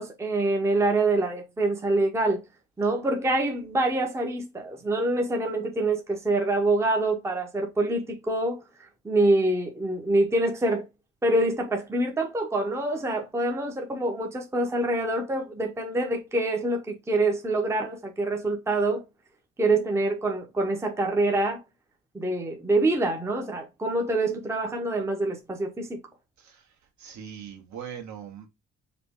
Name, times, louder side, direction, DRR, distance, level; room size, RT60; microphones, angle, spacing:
voice 1, 0.0-2.4 2.8-8.6 9.0-10.8 11.2-19.1 19.6-21.6 22.1-26.0, right 2 dB, 10° right, 0.7 m, -25 dB
voice 2, 27.0-28.5, right 8 dB, 70° right, 1.6 m, -40 dB
5.0 x 2.8 x 3.5 m
cardioid pair, 175°, 30 cm